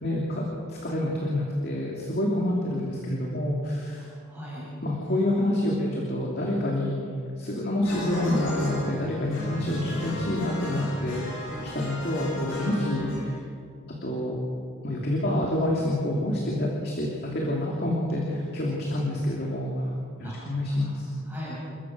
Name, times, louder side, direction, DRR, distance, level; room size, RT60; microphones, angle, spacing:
voice 1, 0.0-4.1 4.8-7.0 7.4-13.3 14.0-14.4 14.8-19.9 20.2-21.1, left 1 dB, 45° left, -2 dB, 2.9 m, -27 dB
voice 2, 4.0-4.7 12.3-12.4 20.2-20.4 20.7-20.9 21.2-21.6, left 1 dB, 10° right, -9 dB, 7.2 m, -40 dB
sound 1, 7.8-13.2, left 1 dB, 60° left, 6.0 m, -34 dB
29.0 x 14.5 x 6.3 m, 2.3 s
head